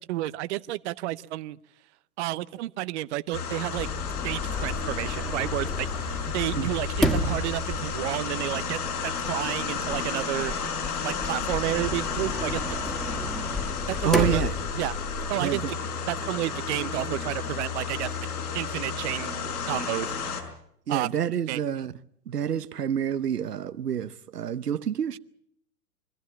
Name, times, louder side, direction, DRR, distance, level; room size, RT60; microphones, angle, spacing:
voice 1, 0.1-1.6 2.2-3.9 4.2-10.5 11.0-12.6 13.9-14.5 14.8-15.0 15.3-15.8 16.1-18.1 18.5-19.4 19.7-20.1 20.9-21.1 21.5-21.6, right 16 dB, 50° right, 0.8 m, -31 dB
sound 1, 3.3-20.4, left 6 dB, 70° left, 5.6 m, -32 dB
Sliding door, 3.8-15.3, left 1 dB, ahead, 1.9 m, -33 dB
voice 2, 14.0-14.5 15.4-15.7 20.9-21.9 22.3-25.2, right 9 dB, 80° right, 1.0 m, -28 dB
24.5 x 14.5 x 8.6 m
figure-of-eight pair, 105°, 46 cm